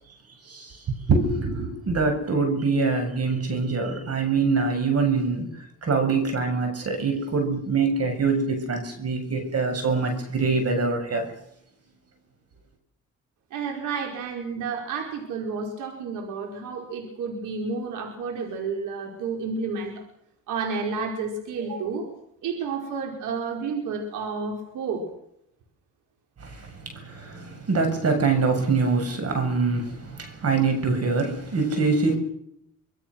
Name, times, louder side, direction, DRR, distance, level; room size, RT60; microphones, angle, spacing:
voice 1, 0.4-11.3 26.4-32.2, right 4 dB, 55° right, 7.2 m, -24 dB
voice 2, 13.5-20.1 20.5-22.1 22.4-25.0, right 4 dB, 90° right, 5.2 m, -31 dB
26.5 x 21.0 x 6.4 m
cardioid pair, 90°, 30 cm